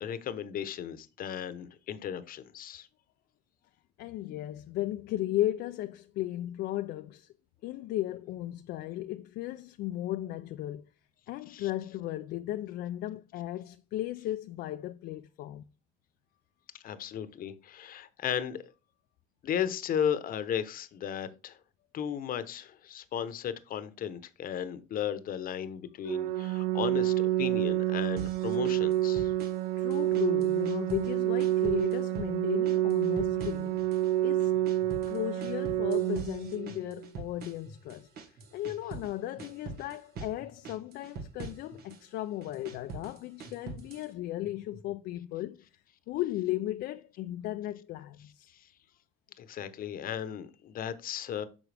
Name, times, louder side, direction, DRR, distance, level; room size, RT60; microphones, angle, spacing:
voice 1, 0.0-2.9 11.5-11.7 16.7-18.7 19.4-21.6 21.9-29.3 48.5-48.7 49.4-51.5, left 9 dB, 60° left, 0.9 m, -35 dB
voice 2, 4.0-7.3 7.6-10.8 11.3-15.6 29.8-33.8 34.2-34.5 35.1-38.1 38.5-45.6 46.1-48.5, left 14 dB, 75° left, 0.4 m, -35 dB
Organ, 26.0-37.0, right 14 dB, 85° right, 0.5 m, -28 dB
sound 1, 28.2-29.7 29.9-31.1 31.4-32.3 32.7-34.1 34.4-39.1 39.4-40.4 40.6-42.0 42.4-44.1, right 4 dB, 65° right, 1.5 m, -44 dB
sound 2, 33.8-33.9 34.5-34.9 35.4-35.9 36.4-36.8 37.4-37.8 38.4-38.8 39.4-39.7 40.4-40.8 41.4-41.8 42.5-42.8 43.4-43.8 44.4-44.8, right 2 dB, 50° right, 2.1 m, -52 dB
9.1 x 5.9 x 3.4 m
cardioid pair, 110°, 17 cm